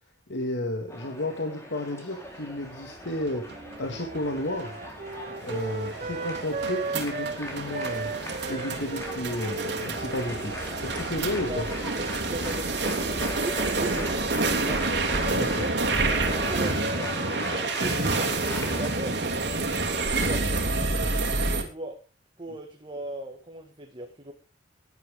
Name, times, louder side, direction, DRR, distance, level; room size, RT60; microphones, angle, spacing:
voice 1, 0.3-3.5 3.8-4.8 5.4-8.1 8.5-11.7 15.3-15.7, left 1 dB, 85° left, 3 dB, 2.1 m, -32 dB
sound 1, 0.9-18.9, equal, 15° left, 3.9 m, -39 dB
sound 2, 3.0-21.6, right 3 dB, 70° right, 2.9 m, -28 dB
Wind instrument woodwind instrument, 3.4-7.4 7.7-12.2, right 3 dB, 45° right, 0.8 m, -37 dB
voice 2, 12.3-14.9 15.5-15.8 16.3-17.1 17.6-19.2 20.0-20.5 21.6-22.0 22.4-24.3, right 1 dB, 30° right, 3 dB, 1.8 m, -38 dB
17.0 x 10.5 x 3.7 m, 0.34 s
head